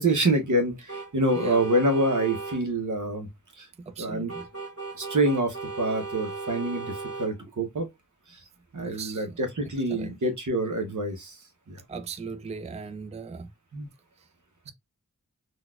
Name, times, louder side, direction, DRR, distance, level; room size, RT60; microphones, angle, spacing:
voice 1, 0.0-3.3 3.6-3.7 4.0-4.3 4.9-7.9 8.7-11.3 11.7-11.8 13.7-13.9, right 1 dB, 70° right, 0.8 m, -26 dB
sound 1, 0.9-2.6 4.3-7.3, right 3 dB, 50° right, 1.6 m, -36 dB
voice 2, 3.9-4.5 8.8-9.4 9.9-10.2 11.9-13.5 14.2-14.3, right 5 dB, 20° right, 0.3 m, -38 dB
3.9 x 2.3 x 2.3 m
wide cardioid pair, 50°, 31 cm